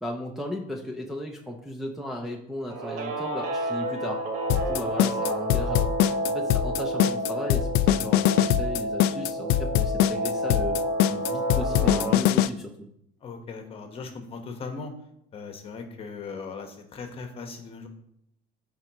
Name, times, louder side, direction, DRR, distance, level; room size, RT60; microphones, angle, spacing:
voice 1, 0.0-4.2 4.5-10.8 11.1-12.7, equal, ahead, -1 dB, 0.7 m, -35 dB
Guitar, 2.7-12.1, right 1 dB, 80° right, 1.7 m, -30 dB
sound 1, 4.5-12.5, left 13 dB, 65° left, 0.4 m, -22 dB
voice 2, 13.2-14.9 15.3-17.9, left 4 dB, 30° left, 5 dB, 1.3 m, -38 dB
13.5 x 4.6 x 3.0 m, 0.75 s
cardioid pair, 135°, 18 cm